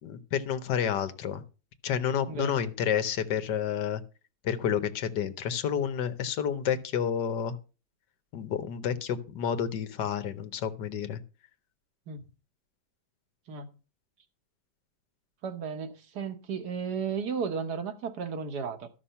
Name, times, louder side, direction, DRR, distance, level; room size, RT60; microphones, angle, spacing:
voice 1, 0.0-1.4 1.8-4.0 4.4-7.6 8.3-11.2, left 8 dB, 80° left, 1.6 m, -30 dB
voice 2, 2.3-2.6 12.1-12.2 13.5-13.7 15.4-18.9, right 6 dB, 70° right, 1.7 m, -34 dB
13.0 x 6.0 x 5.6 m
omnidirectional pair, 1.8 m